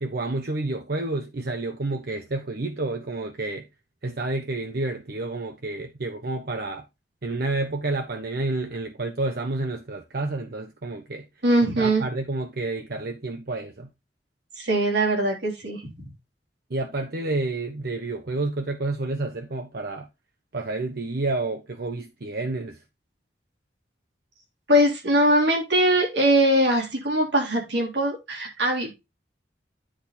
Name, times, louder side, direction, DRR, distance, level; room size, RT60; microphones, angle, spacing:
voice 1, 0.0-3.7 4.0-6.8 7.2-11.3 11.8-13.9 16.7-20.1 20.5-22.8, right 2 dB, 60° right, 0.9 m, -29 dB
voice 2, 11.4-12.0 14.6-15.8 24.7-28.9, right 1 dB, 90° right, 3.6 m, -21 dB
10.0 x 4.2 x 4.2 m
head